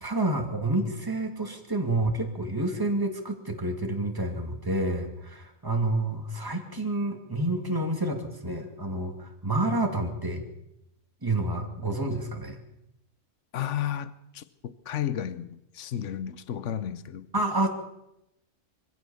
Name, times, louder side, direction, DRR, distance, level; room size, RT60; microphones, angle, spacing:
voice 1, 0.0-10.4 11.2-12.6 17.3-17.7, right 2 dB, 15° right, 2.5 m, -29 dB
voice 2, 13.5-17.3, left 10 dB, 70° left, 1.2 m, -33 dB
24.0 x 16.0 x 7.1 m
omnidirectional pair, 1.3 m